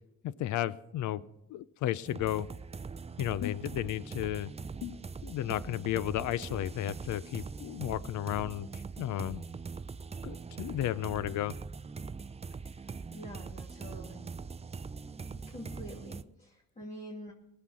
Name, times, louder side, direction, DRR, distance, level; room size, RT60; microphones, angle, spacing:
voice 1, 0.2-1.2 1.5-2.5 3.2-4.5 4.8-9.4 10.2-11.5 15.3-15.4, left 13 dB, 75° left, 18 dB, 0.6 m, -33 dB
sound 1, 2.0-16.2, right 4 dB, 20° right, 0.5 m, -42 dB
voice 2, 12.5-14.3 15.5-17.3, equal, 25° left, -2 dB, 2.4 m, -47 dB
19.0 x 7.5 x 6.2 m, 0.84 s
cardioid pair, 90°, 30 cm